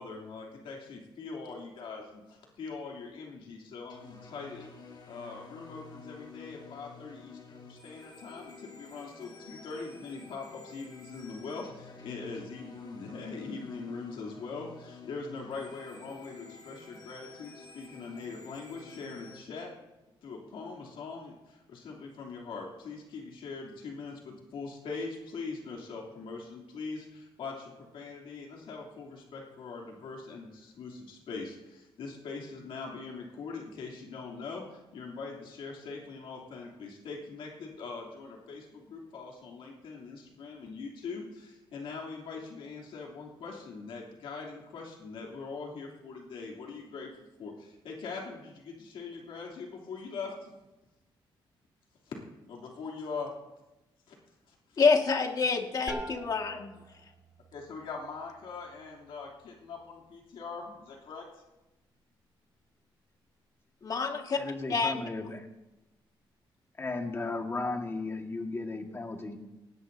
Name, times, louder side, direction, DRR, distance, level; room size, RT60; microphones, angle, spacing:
voice 1, 0.0-19.7 20.2-47.1 47.4-50.6 52.0-52.1 52.5-53.3 54.1-54.2 54.5-54.8 57.5-61.4, left 4 dB, 80° left, -1 dB, 3.1 m, -42 dB
sound 1, 3.9-19.4, left 4 dB, 60° left, 6.3 m, -51 dB
voice 2, 54.8-56.7 63.8-64.4 64.7-65.0, left 4 dB, 45° left, 3 dB, 1.9 m, -27 dB
sound 2, 55.9-61.4, right 1 dB, 10° right, 2.4 m, -47 dB
voice 3, 64.4-65.5 66.8-69.4, left 3 dB, 25° left, 3 dB, 1.7 m, -35 dB
19.0 x 17.5 x 2.8 m, 1.0 s
cardioid pair, 100°, 9 cm